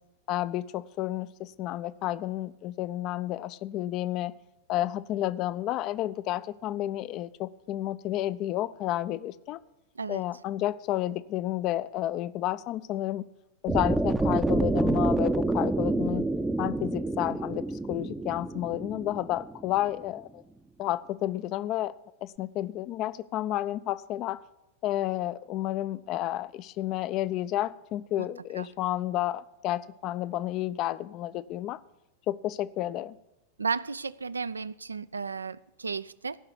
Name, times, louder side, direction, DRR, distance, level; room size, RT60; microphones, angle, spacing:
voice 1, 0.3-4.3 4.7-9.6 10.1-13.3 13.6-16.3 16.6-20.4 20.8-21.9 22.2-24.4 24.8-31.8 32.3-33.2, left 14 dB, 40° left, 17 dB, 0.4 m, -31 dB
sound 1, 13.7-19.8, right 2 dB, 5° right, 0.6 m, -28 dB
voice 2, 33.6-36.4, right 5 dB, 75° right, 16 dB, 0.4 m, -33 dB
15.0 x 5.8 x 8.2 m, 0.95 s
figure-of-eight pair, 90°, 0 cm